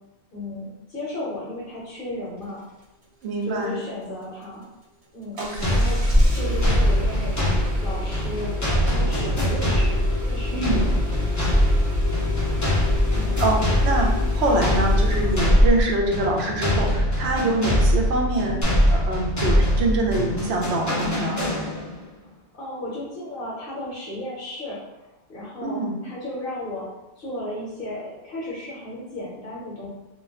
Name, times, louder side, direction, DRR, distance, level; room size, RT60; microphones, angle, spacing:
voice 1, 0.3-2.6 3.5-4.7 5.1-5.4 5.7-8.5 8.8-10.9 22.5-24.8 25.3-26.9 27.2-29.9, left 1 dB, 55° left, -5 dB, 0.8 m, -34 dB
voice 2, 3.2-3.7 5.4-5.7 10.5-10.9 13.4-18.6 18.9-21.4 25.6-26.0, right 2 dB, 75° right, 0 dB, 0.8 m, -25 dB
Engine starting, 5.4-16.0 18.6-18.7, left 2 dB, 40° right, 0.6 m, -25 dB
sound 1, 5.6-22.1, equal, 25° left, 0.4 m, -23 dB
2.3 x 2.2 x 3.4 m, 0.99 s
omnidirectional pair, 1.1 m